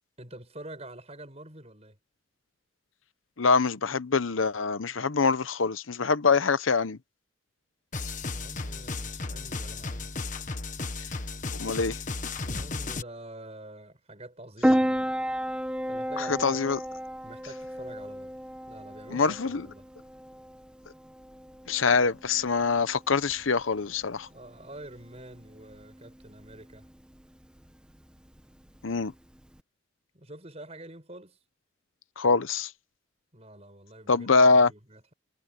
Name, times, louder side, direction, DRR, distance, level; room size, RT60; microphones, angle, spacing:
voice 1, 0.2-2.0 8.3-10.1 12.4-15.1 15.9-16.8 17.2-18.4 18.7-19.9 24.3-26.9 30.1-31.4 33.3-35.1, right 1 dB, 30° right, 7.5 m, -47 dB
voice 2, 3.4-7.0 11.5-12.0 16.2-16.8 19.1-19.7 21.7-24.3 28.8-29.1 32.2-32.7 34.1-34.7, left 4 dB, 90° left, 0.9 m, -24 dB
sound 1, 7.9-13.0, left 3 dB, 40° left, 1.4 m, -34 dB
Piano, 14.6-29.6, equal, 5° right, 1.6 m, -34 dB
head